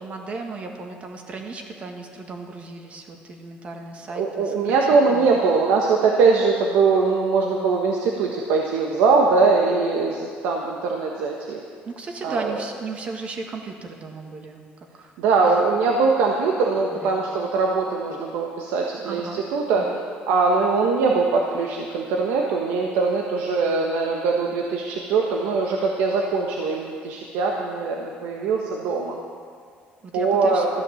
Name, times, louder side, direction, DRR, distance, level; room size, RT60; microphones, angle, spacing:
voice 1, 0.0-5.3 11.8-14.6 14.9-15.1 15.4-15.6 16.9-17.2 19.1-19.4 19.8-20.0 30.0-30.7, right 3 dB, 35° right, 3 dB, 1.8 m, -35 dB
voice 2, 4.1-11.6 12.2-12.6 15.2-19.8 20.3-29.2 30.1-30.7, right 4 dB, 85° right, 0 dB, 1.3 m, -21 dB
14.5 x 10.5 x 7.1 m, 2.1 s
cardioid pair, 140°, 4 cm